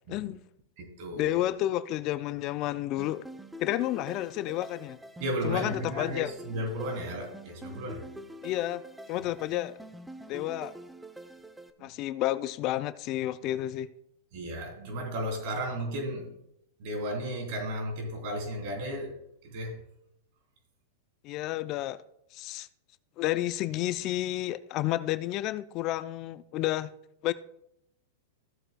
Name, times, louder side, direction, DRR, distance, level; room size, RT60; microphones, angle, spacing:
voice 1, 0.1-0.4 1.2-3.2 3.6-5.0 5.4-6.3 8.4-8.8 9.1-9.8 10.3-10.7 11.8-13.9 21.2-22.0 22.3-22.7 23.2-26.9 27.2-27.3, left 15 dB, 45° left, 0.4 m, -31 dB
voice 2, 0.8-1.4 5.2-8.0 11.8-11.9 14.3-16.3 16.8-19.1 19.4-19.8, equal, 55° right, 3.1 m, -34 dB
sound 1, 3.0-11.7, right 1 dB, 5° right, 0.7 m, -46 dB
15.5 x 7.6 x 2.2 m
hypercardioid pair, 115°, 0 cm